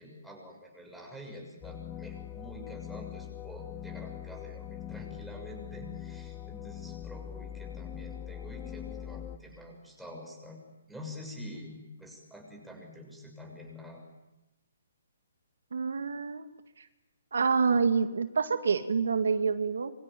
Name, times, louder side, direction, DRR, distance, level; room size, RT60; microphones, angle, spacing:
voice 1, 0.0-10.6 10.9-14.0, left 1 dB, ahead, -1 dB, 6.6 m, -47 dB
sound 1, 1.6-9.4, left 10 dB, 15° left, 1.1 m, -42 dB
voice 2, 15.7-16.5 16.8-16.9 17.3-19.9, right 5 dB, 80° right, 8 dB, 2.1 m, -27 dB
26.5 x 24.5 x 9.2 m, 0.98 s
hypercardioid pair, 160°, 0 cm